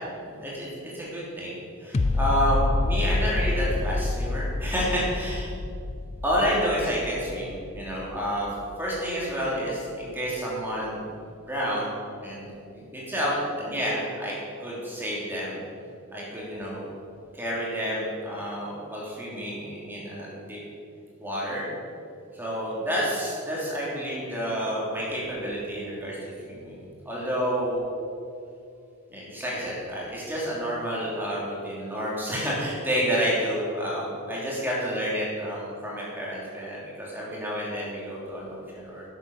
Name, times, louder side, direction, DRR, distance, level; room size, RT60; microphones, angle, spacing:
voice 1, 0.2-1.5 1.8-5.5 6.2-8.5 8.8-11.0 11.5-11.9 12.2-14.3 14.6-15.6 16.1-16.8 17.3-20.6 21.2-21.7 22.3-27.8 29.1-39.0, equal, 10° right, -6 dB, 3.1 m, -29 dB
sound 1, 1.9-9.0 9.4-9.5, left 2 dB, 30° left, 0.3 m, -28 dB
11.0 x 8.1 x 7.1 m, 2.5 s
head